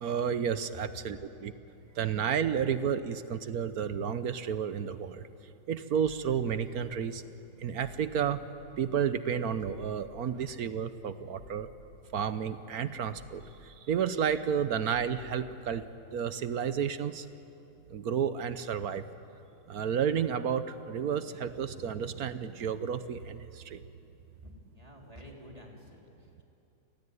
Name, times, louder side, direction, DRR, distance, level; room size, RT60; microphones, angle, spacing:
voice 1, 0.0-1.5 1.9-5.3 5.7-7.2 7.6-8.4 8.8-11.7 12.1-15.9 16.1-17.3 17.9-19.0 19.7-23.8, right 7 dB, 60° right, 12 dB, 1.2 m, -31 dB
sound 1, 6.0-9.1 9.6-14.0 14.3-16.7, left 2 dB, 75° left, 3.8 m, -55 dB
voice 2, 24.4-26.4, equal, 20° right, -1 dB, 3.5 m, -50 dB
29.5 x 17.5 x 9.7 m, 2.8 s
omnidirectional pair, 2.1 m